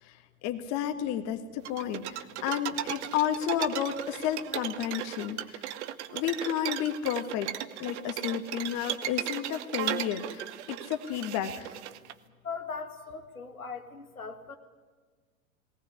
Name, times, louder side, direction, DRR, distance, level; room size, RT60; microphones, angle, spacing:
voice 1, 0.4-5.7 6.1-7.5 7.8-11.7, left 10 dB, 40° left, 6 dB, 1.6 m, -32 dB
sound 1, 1.7-12.1, right 12 dB, 55° right, 1.1 m, -36 dB
voice 2, 12.4-14.6, left 5 dB, 85° left, 5 dB, 2.0 m, -39 dB
19.0 x 18.0 x 9.8 m, 1.4 s
figure-of-eight pair, 95°, 42 cm